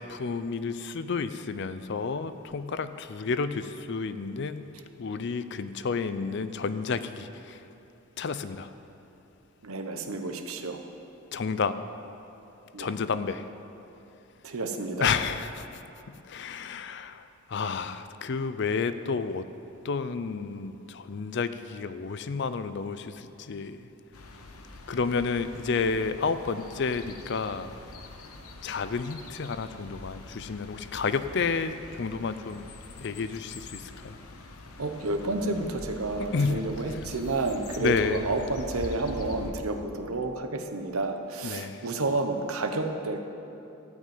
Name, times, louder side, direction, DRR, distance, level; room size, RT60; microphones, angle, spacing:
voice 1, 0.0-4.7 5.0-7.6 8.2-8.7 11.3-11.7 12.8-13.5 15.0-17.2 17.5-19.5 19.8-23.8 24.9-27.7 28.6-32.6 33.0-34.2 36.2-37.0 37.8-38.2 41.4-41.9, left 5 dB, 55° left, 12 dB, 0.4 m, -31 dB
voice 2, 9.6-10.8 12.7-12.9 14.4-15.2 34.8-43.2, right 2 dB, 80° right, 5 dB, 1.0 m, -30 dB
sound 1, 24.1-39.5, left 2 dB, 85° left, 0.9 m, -44 dB
13.5 x 5.3 x 8.9 m, 2.8 s
head